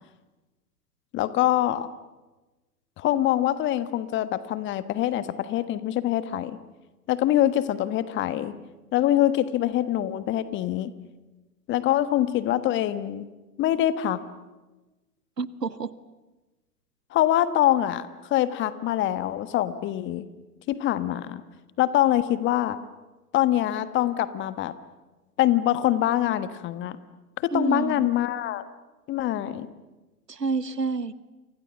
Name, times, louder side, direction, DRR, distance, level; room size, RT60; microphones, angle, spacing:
voice 1, 1.1-1.9 3.0-6.6 7.1-8.5 8.9-10.9 11.7-13.3 13.6-14.2 17.1-20.2 20.7-21.4 21.8-22.8 23.3-24.7 25.4-27.0 27.4-28.6 29.1-29.7, left 13 dB, 25° left, 14 dB, 1.4 m, -24 dB
voice 2, 15.4-15.9 27.5-28.1 30.3-31.1, right 4 dB, 85° right, 16 dB, 1.4 m, -28 dB
29.5 x 25.0 x 7.3 m, 1.1 s
figure-of-eight pair, 105°, 48 cm